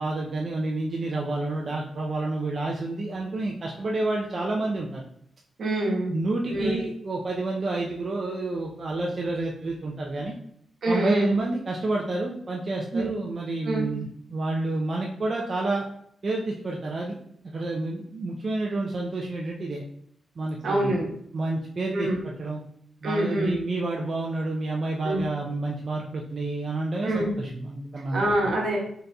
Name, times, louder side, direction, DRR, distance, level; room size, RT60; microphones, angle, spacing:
voice 1, 0.0-5.0 6.1-10.3 10.9-15.8 16.2-17.2 17.4-19.8 20.4-20.9 21.3-22.6 23.0-28.2, right 2 dB, 45° right, -2 dB, 0.5 m, -29 dB
voice 2, 5.6-6.1 6.5-6.8 10.8-11.3 12.9-13.1 13.6-13.9 20.6-21.1 21.9-22.2 23.0-23.6 25.0-25.2 27.0-27.3 28.1-28.8, right 1 dB, 70° right, -2 dB, 1.1 m, -25 dB
4.0 x 3.9 x 2.3 m, 0.68 s
cardioid pair, 95°, 0 cm